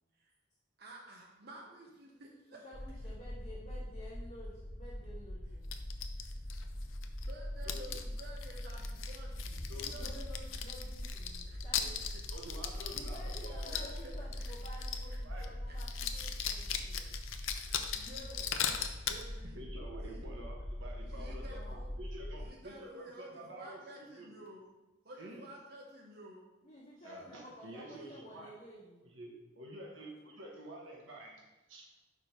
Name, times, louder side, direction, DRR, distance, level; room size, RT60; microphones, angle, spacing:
voice 1, 0.8-2.6 6.2-6.3 7.2-10.3 11.5-11.9 13.6-14.5 14.8-15.8 16.9-17.0 17.9-18.5 19.1-19.6 20.0-20.2 21.0-21.9 22.4-24.6 25.0-26.4, right 1 dB, 50° right, -2 dB, 1.0 m, -52 dB
voice 2, 2.6-5.7 9.8-11.9 12.9-17.1 21.2-21.8 26.6-29.1, equal, 40° left, -11 dB, 1.8 m, -53 dB
sound 1, 2.7-22.5, left 1 dB, 55° left, 1.1 m, -43 dB
sound 2, 5.7-7.3 7.6-15.1 15.4-15.5 15.8-19.2, left 8 dB, 85° left, 0.5 m, -39 dB
voice 3, 7.6-8.0 9.7-10.1 12.3-14.1 15.2-15.6 17.5-18.0 18.5-18.8 19.5-24.3 25.2-25.4 27.0-28.5 29.0-31.9, right 1 dB, 80° right, -1 dB, 1.1 m, -49 dB
sound 3, 9.6-15.0 15.3-15.4 15.9-16.0, equal, 10° left, 0.5 m, -47 dB
5.0 x 4.4 x 5.1 m, 1.0 s
head